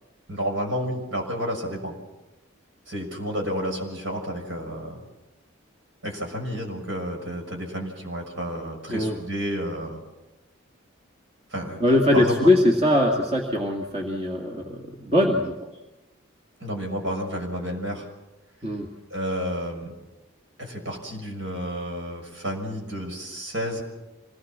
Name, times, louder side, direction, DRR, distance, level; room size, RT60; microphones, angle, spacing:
voice 1, 0.3-2.0 2.9-5.0 6.0-10.0 11.5-11.8 12.1-12.5 16.6-18.1 19.1-19.9 20.6-23.8, equal, 65° right, 1 dB, 6.3 m, -31 dB
voice 2, 11.8-15.7 18.6-18.9, left 1 dB, 30° right, 0 dB, 2.2 m, -21 dB
26.0 x 19.0 x 7.4 m, 1.0 s
head